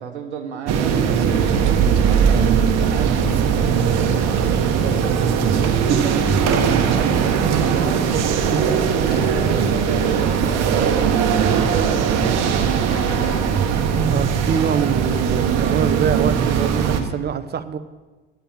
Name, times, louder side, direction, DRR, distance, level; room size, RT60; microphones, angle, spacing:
voice 1, 0.0-4.0 4.4-13.2 14.7-14.9, right 7 dB, 80° right, 1.0 m, -32 dB
sound 1, 0.7-17.0, right 7 dB, 50° right, 1.4 m, -19 dB
Rain, 5.7-15.0, equal, 85° left, 2.9 m, -37 dB
voice 2, 14.1-17.8, right 8 dB, 30° right, 0.9 m, -24 dB
9.0 x 8.6 x 7.5 m
hypercardioid pair, 70°, 33 cm